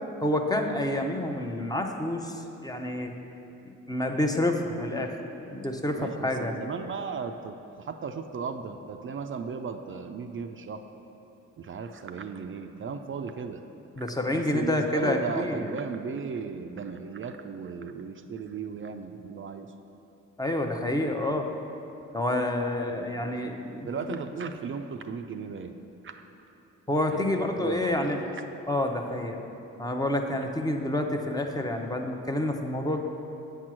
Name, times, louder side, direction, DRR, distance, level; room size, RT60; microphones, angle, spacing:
voice 1, 0.2-3.1 3.9-5.2 5.5-6.5 14.0-15.7 20.4-21.5 22.1-23.9 26.9-28.3 28.7-29.5 29.8-33.0, left 1 dB, 10° left, 3 dB, 0.7 m, -28 dB
voice 2, 6.0-10.9 11.6-13.6 14.3-19.7 22.8-22.9 23.9-25.7 26.0-26.1 27.1-28.3, right 5 dB, 40° right, 7 dB, 0.4 m, -36 dB
8.2 x 4.5 x 6.2 m, 2.9 s
cardioid pair, 75°, 31 cm